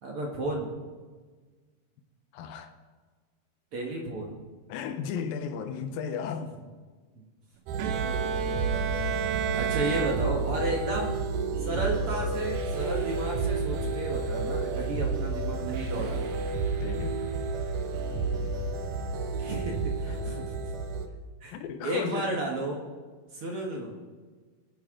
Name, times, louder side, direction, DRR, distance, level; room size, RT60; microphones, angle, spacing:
voice 1, 0.0-0.7 3.7-4.4 7.1-7.2 7.8-8.3 9.6-11.2 11.6-16.3 19.4-20.5 21.4-21.6 21.8-22.8 23.3-23.9, right 1 dB, 50° right, 1.9 m, -33 dB
voice 2, 2.3-2.7 4.7-6.5 16.8-17.1 21.5-22.5, left 7 dB, 75° left, 2.6 m, -34 dB
sound 1, 7.7-21.1, right 3 dB, 70° right, 2.2 m, -30 dB
Bowed string instrument, 7.8-10.9, right 10 dB, 85° right, 1.6 m, -32 dB
22.0 x 9.3 x 3.8 m
omnidirectional pair, 4.3 m